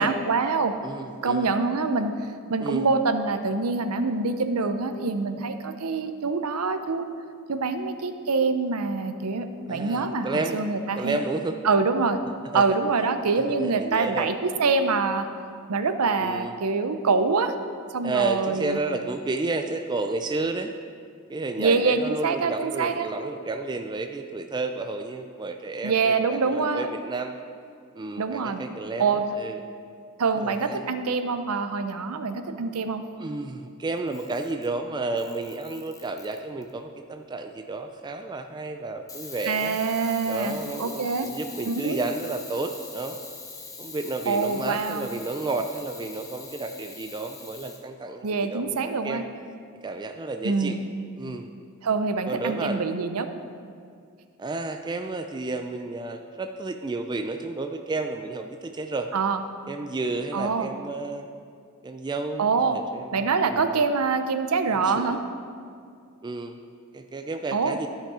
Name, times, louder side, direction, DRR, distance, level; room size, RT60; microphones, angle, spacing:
voice 1, 0.0-0.8 1.2-2.1 2.5-7.1 7.5-11.2 11.6-12.2 12.5-15.3 15.7-17.5 17.9-18.8 21.6-23.1 25.8-26.9 28.2-28.7 29.0-29.3 30.2-33.0 39.5-41.3 41.7-42.0 44.3-45.1 48.2-49.2 50.4-50.8 51.8-53.3 59.1-59.4 60.3-60.7 62.4-62.8 63.1-65.2 67.5-67.8, right 4 dB, 85° right, 9 dB, 0.6 m, -25 dB
voice 2, 0.8-1.5 2.6-2.9 9.7-10.6 11.0-11.6 12.5-12.6 13.6-14.3 16.2-16.5 18.0-20.7 21.3-27.3 27.9-29.1 29.4-29.6 30.4-30.8 33.2-39.8 40.3-43.2 43.8-48.3 48.5-49.2 49.8-50.8 51.2-51.5 52.3-52.8 54.4-59.1 59.7-61.3 61.8-63.7 65.0-65.2 66.2-66.6 66.9-67.9, right 3 dB, 20° right, 6 dB, 0.3 m, -31 dB
Camera, 34.0-34.7 35.2-36.7 39.1-47.8, left 4 dB, 15° left, 0.9 m, -43 dB
13.0 x 5.8 x 4.9 m, 2.3 s
head